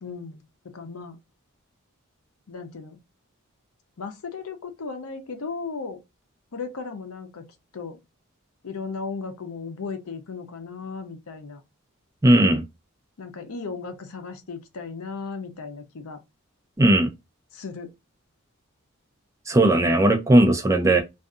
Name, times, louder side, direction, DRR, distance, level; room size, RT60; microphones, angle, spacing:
voice 1, 0.0-1.2 2.5-3.0 4.0-6.0 6.5-7.4 7.7-8.0 8.6-11.6 13.2-16.2 17.5-17.9, left 4 dB, 75° left, 0.6 m, -36 dB
voice 2, 12.2-12.6 16.8-17.1 19.5-21.0, right 1 dB, 15° right, 0.3 m, -17 dB
2.6 x 2.4 x 2.3 m
head